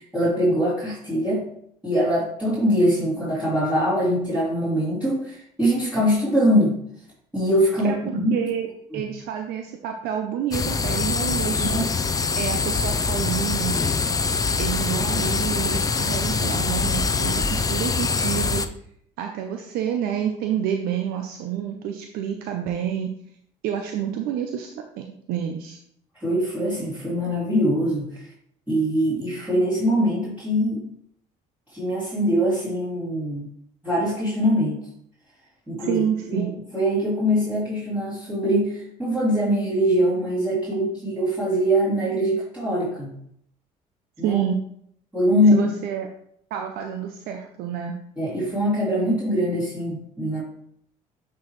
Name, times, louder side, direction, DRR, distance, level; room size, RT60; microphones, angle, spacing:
voice 1, 0.0-1.5 1.8-6.8 7.3-8.3 8.9-9.0 11.6-11.8 26.2-28.3 28.7-30.9 31.7-33.4 33.8-34.8 35.7-36.0 36.3-36.5 36.7-43.1 44.2-44.4 45.1-45.6 48.2-50.4, equal, 10° right, -10 dB, 2.9 m, -22 dB
voice 2, 7.8-8.7 8.9-11.8 12.4-13.8 14.6-18.7 19.2-23.1 23.6-25.8 35.8-36.5 44.2-44.6 45.5-46.1 46.5-48.0, right 9 dB, 80° right, 4 dB, 0.6 m, -28 dB
sound 1, 10.5-18.7, left 4 dB, 25° left, 0.5 m, -24 dB
8.2 x 4.6 x 3.2 m, 0.69 s
supercardioid pair, 80°, 16 cm